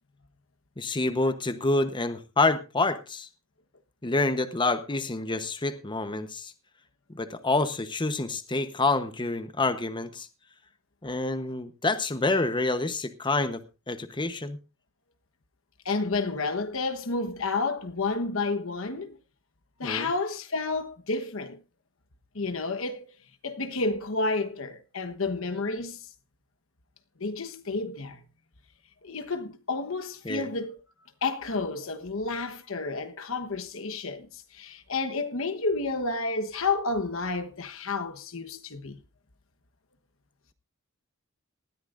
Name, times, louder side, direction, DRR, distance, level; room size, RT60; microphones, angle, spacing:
voice 1, 0.8-3.3 4.0-6.5 7.1-10.3 11.0-13.6 13.9-14.6 19.8-20.1 30.2-30.5, left 2 dB, 25° left, 1.0 m, -27 dB
voice 2, 15.8-19.2 19.8-21.6 22.3-23.1 23.4-26.0 27.2-28.2 29.0-30.8 31.2-39.0, left 3 dB, 65° left, 1.2 m, -30 dB
19.0 x 13.5 x 2.6 m
head